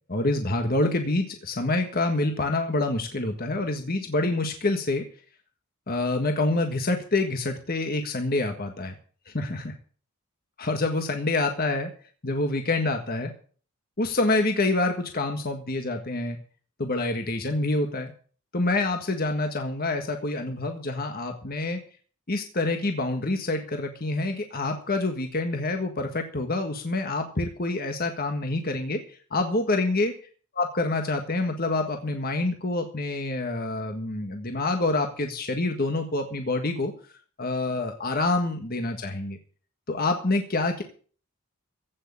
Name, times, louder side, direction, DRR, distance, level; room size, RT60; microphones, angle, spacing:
voice 1, 0.1-5.1 5.9-8.9 9.3-9.7 10.6-11.9 12.2-13.3 14.0-16.4 16.8-18.1 18.5-21.8 22.3-30.1 30.5-36.9 37.4-39.4 39.9-40.8, left 2 dB, 40° left, 4 dB, 1.6 m, -27 dB
16.0 x 6.5 x 8.4 m, 0.42 s
head